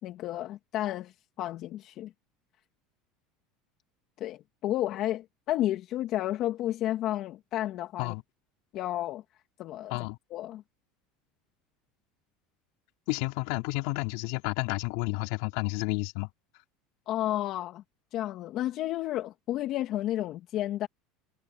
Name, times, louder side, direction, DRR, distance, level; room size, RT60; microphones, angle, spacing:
voice 1, 0.0-2.1 4.2-8.1 8.7-9.2 9.6-10.0 10.3-10.6 17.1-17.8 18.1-20.9, left 13 dB, 55° left, 2.2 m, -32 dB
voice 2, 13.1-16.3, left 23 dB, 75° left, 4.0 m, -31 dB
supercardioid pair, 105°, 0 cm